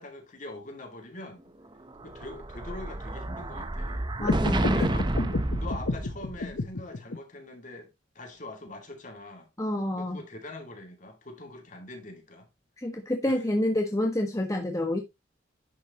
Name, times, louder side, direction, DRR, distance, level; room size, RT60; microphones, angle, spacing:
voice 1, 0.0-1.4 2.0-4.1 4.7-5.1 5.6-7.9 8.1-9.5 10.0-12.5 13.2-13.4, left 2 dB, 40° left, 2.4 m, -43 dB
Explosion, 1.9-6.5, right 1 dB, 25° right, 0.8 m, -30 dB
sound 1, 4.2-7.2, left 2 dB, 75° left, 0.8 m, -31 dB
voice 2, 4.2-5.1 9.6-10.2 12.8-15.0, left 1 dB, 15° left, 1.3 m, -28 dB
10.5 x 6.6 x 2.9 m
head